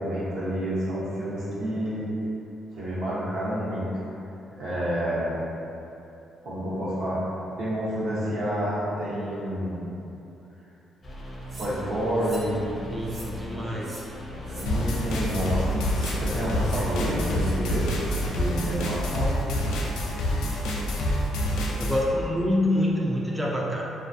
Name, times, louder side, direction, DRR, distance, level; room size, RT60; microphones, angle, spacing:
voice 1, 0.0-2.1 2.7-3.8 4.6-5.3 6.4-7.2 7.6-9.9 11.6-12.6 13.2-13.3 13.5-13.8 14.3-15.9 16.2-19.3, equal, 80° right, -9 dB, 0.7 m, -29 dB
sound 1, 11.0-18.5, left 2 dB, 30° left, 0.6 m, -38 dB
sound 2, 11.5-11.7 12.2-12.5 13.0-13.3 13.8-14.0 14.5-14.7 15.2-15.4 15.9-16.2 16.6-16.8 17.3-17.5 18.0-18.2, right 1 dB, 50° right, 0.7 m, -43 dB
voice 2, 12.9-14.1 21.8-23.8, left 1 dB, 10° right, -3 dB, 0.3 m, -26 dB
sound 3, 14.7-22.0, equal, 90° left, 0.3 m, -27 dB
2.3 x 2.2 x 2.5 m, 2.8 s
cardioid pair, 90°, 0 cm